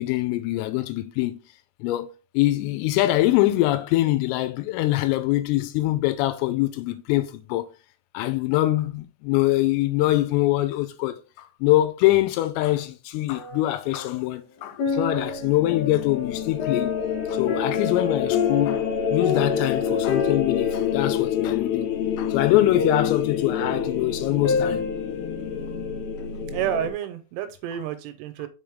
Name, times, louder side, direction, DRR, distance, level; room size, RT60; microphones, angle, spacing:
voice 1, 0.0-1.4 1.8-2.1 2.3-7.7 8.1-17.0 17.3-24.9, left 16 dB, 85° left, 3.3 m, -24 dB
sound 1, 13.3-14.2 14.6-25.7 26.2-26.3, left 5 dB, 40° left, 3.4 m, -30 dB
sound 2, 15.0-26.9, left 8 dB, 70° left, 3.1 m, -27 dB
voice 2, 26.5-28.5, right 10 dB, 80° right, 3.1 m, -29 dB
6.8 x 5.1 x 3.5 m
omnidirectional pair, 6.0 m